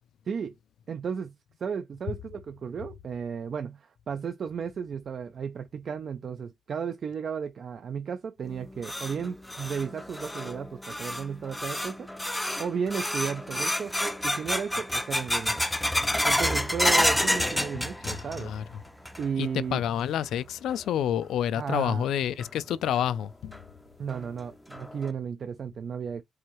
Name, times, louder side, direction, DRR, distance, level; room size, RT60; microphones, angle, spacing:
voice 1, 0.9-1.3 1.6-15.7 16.2-18.7 19.2-19.8 21.5-22.1 24.0-26.2, right 6 dB, 45° right, 0.4 m, -34 dB
sound 1, 8.4-18.6 18.8-19.5 19.8-19.9 20.7-20.8 22.4-22.5 23.0-23.1 23.5-23.6 24.1-24.2 24.7-25.1, left 1 dB, 5° left, 0.5 m, -29 dB
voice 2, 18.0-18.6 19.4-23.5, left 10 dB, 80° left, 0.4 m, -29 dB
4.7 x 2.7 x 3.0 m
cardioid pair, 135°, 0 cm